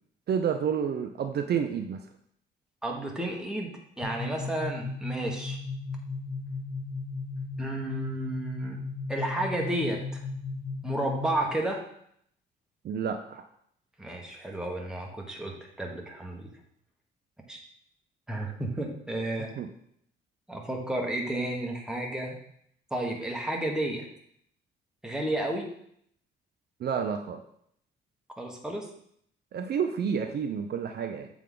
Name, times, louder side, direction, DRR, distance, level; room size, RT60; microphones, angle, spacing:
voice 1, 0.3-2.0 12.8-13.4 19.6-19.7 26.8-27.4 29.5-31.3, right 7 dB, 55° right, 5 dB, 0.5 m, -29 dB
voice 2, 2.8-5.6 7.6-8.8 9.1-10.2 10.8-11.8 14.0-16.5 17.5-17.6 18.3-19.5 20.5-22.4 22.9-24.1 25.0-25.7 28.4-28.9, right 1 dB, 5° right, 0 dB, 1.3 m, -32 dB
sound 1, 4.0-11.6, left 3 dB, 50° left, 1.0 m, -36 dB
7.7 x 3.6 x 3.7 m, 0.69 s
cardioid pair, 90°, 20 cm